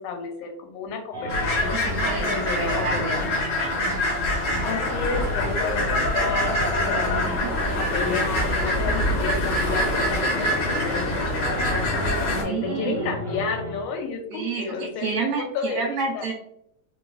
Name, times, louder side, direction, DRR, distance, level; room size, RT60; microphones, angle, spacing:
voice 1, 0.0-1.8 2.2-3.3 4.7-7.4 7.7-15.8 16.1-16.3, left 4 dB, 85° left, 4 dB, 2.0 m, -31 dB
sound 1, 1.1-13.8, equal, 35° right, 1.0 m, -33 dB
sound 2, 1.3-12.4, left 1 dB, 70° left, 1.2 m, -25 dB
voice 2, 1.8-4.0 7.0-7.5 12.5-13.2 14.3-16.3, right 4 dB, 75° right, -3 dB, 1.8 m, -31 dB
4.5 x 2.3 x 2.3 m, 0.75 s
omnidirectional pair, 3.4 m